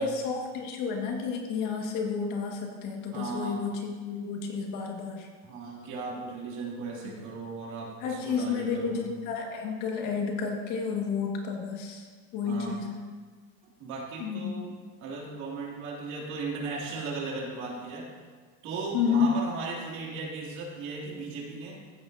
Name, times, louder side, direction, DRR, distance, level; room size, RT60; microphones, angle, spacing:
voice 1, 0.0-5.3 7.0-7.1 8.0-12.1 12.3-13.0 14.2-14.5 18.9-19.4, left 5 dB, 55° left, 1 dB, 1.8 m, -31 dB
voice 2, 3.1-3.6 5.4-9.1 12.4-12.8 13.8-14.7 15.0-18.1 18.6-21.8, right 3 dB, 50° right, -2 dB, 2.7 m, -36 dB
15.0 x 7.8 x 2.7 m, 1.5 s
supercardioid pair, 130°, 36 cm